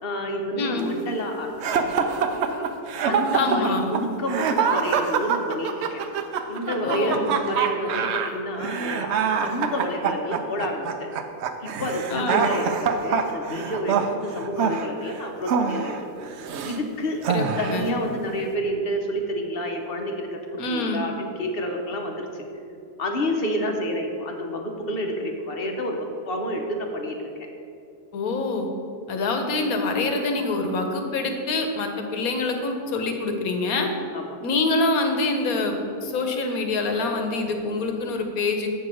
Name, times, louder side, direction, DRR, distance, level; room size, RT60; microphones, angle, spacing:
voice 1, 0.0-2.7 3.0-6.0 6.5-11.1 11.6-15.9 16.6-17.2 17.6-22.5 23.0-27.5 34.1-34.4, equal, 50° left, 3 dB, 0.8 m, -29 dB
voice 2, 0.6-0.9 3.3-3.9 6.8-7.3 12.1-12.5 17.3-17.9 20.6-21.0 28.1-28.7 29.1-33.9 34.4-38.7, left 3 dB, 65° left, 4 dB, 1.3 m, -25 dB
sound 1, 1.6-16.8 17.2-17.9, right 6 dB, 70° right, 0.6 m, -25 dB
8.0 x 4.6 x 6.3 m, 2.6 s
omnidirectional pair, 1.7 m